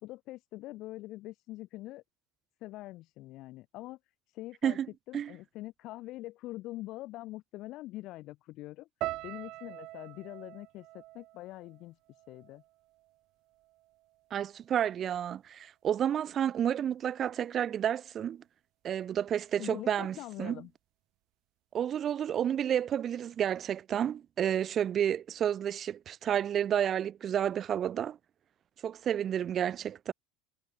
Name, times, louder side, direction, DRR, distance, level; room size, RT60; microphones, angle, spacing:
voice 1, 0.0-2.0 2.6-4.0 4.3-4.8 5.1-8.9 9.2-12.6 19.6-20.7, left 17 dB, 50° left, 3.1 m, -44 dB
sound 1, 9.0-13.2 13.5-14.3 14.8-15.1, right 18 dB, 50° right, 5.5 m, -44 dB
voice 2, 14.3-18.4 18.8-20.6 21.7-28.2 28.8-30.1, right 9 dB, 30° right, 1.2 m, -30 dB
supercardioid pair, 145°, 0 cm